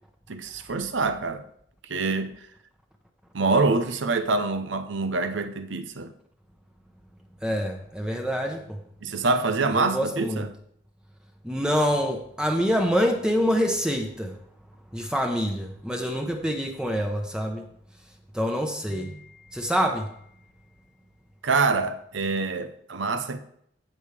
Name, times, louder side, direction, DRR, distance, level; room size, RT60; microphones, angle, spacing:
voice 1, 0.3-1.4 1.9-2.3 3.3-6.1 9.0-10.5 21.4-23.4, right 3 dB, 90° right, 0.8 m, -25 dB
voice 2, 7.4-8.8 9.7-10.4 11.4-14.3 14.9-17.6 18.3-19.3 19.5-20.1, equal, 5° right, 0.9 m, -26 dB
15.0 x 5.4 x 3.3 m
head